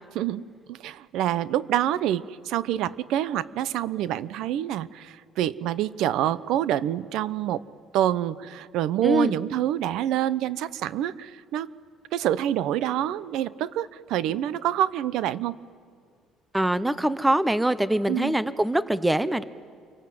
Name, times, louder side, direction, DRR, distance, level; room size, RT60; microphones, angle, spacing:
voice 1, 0.1-7.6 7.9-11.7 12.1-15.6 18.1-18.4, right 12 dB, 70° right, 17 dB, 0.8 m, -27 dB
voice 2, 9.0-9.3 16.5-19.4, right 1 dB, 5° right, 14 dB, 0.7 m, -23 dB
29.0 x 25.0 x 7.7 m, 2.1 s
cardioid pair, 165°, 0 cm